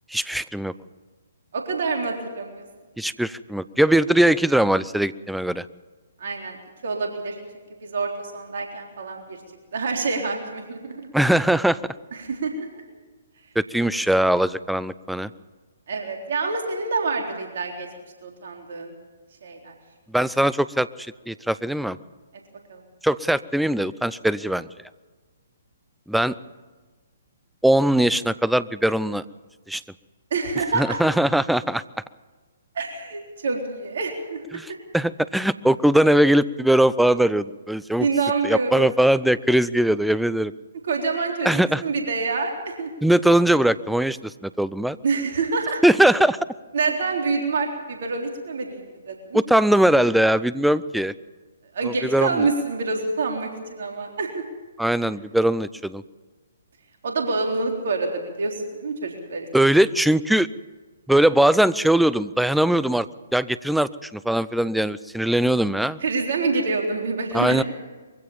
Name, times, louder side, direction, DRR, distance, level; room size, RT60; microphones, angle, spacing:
voice 1, 0.1-0.7 3.0-5.7 11.1-11.9 13.6-15.3 20.1-20.9 21.3-22.0 23.0-24.7 26.1-26.3 27.6-29.2 29.7-29.8 30.7-31.8 34.5-38.1 38.4-40.5 41.4-41.8 43.0-45.0 45.8-46.4 49.3-51.1 51.8-52.5 54.8-56.0 59.5-60.5 61.1-63.1 63.3-66.0 67.3-67.6, right 1 dB, ahead, 17 dB, 0.5 m, -20 dB
voice 2, 1.5-2.6 6.2-6.6 6.8-9.4 9.7-11.1 12.1-12.8 15.9-17.9 18.2-18.9 19.4-19.7 22.7-22.8 30.3-31.0 32.7-34.8 38.0-38.9 40.8-42.9 45.0-45.8 46.7-49.4 51.7-54.4 57.0-59.5 66.0-67.6, right 4 dB, 55° right, 2 dB, 3.7 m, -27 dB
23.0 x 16.0 x 7.3 m, 1.3 s
figure-of-eight pair, 125°, 0 cm